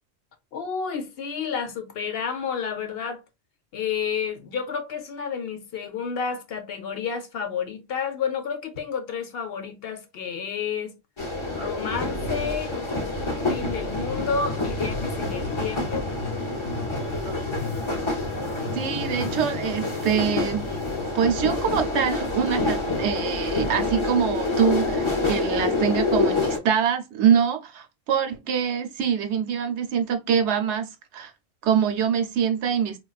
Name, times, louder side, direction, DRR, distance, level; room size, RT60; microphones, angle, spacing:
voice 1, 0.5-3.2 3.7-10.9 11.5-12.8 13.5-16.1, left 6 dB, 65° left, 0.8 m, -30 dB
sound 1, 11.2-26.6, left 2 dB, 35° left, 0.6 m, -27 dB
voice 2, 18.7-20.6 21.1-31.3 31.6-33.0, right 8 dB, 80° right, 0.9 m, -24 dB
3.8 x 2.3 x 2.3 m
omnidirectional pair, 1.1 m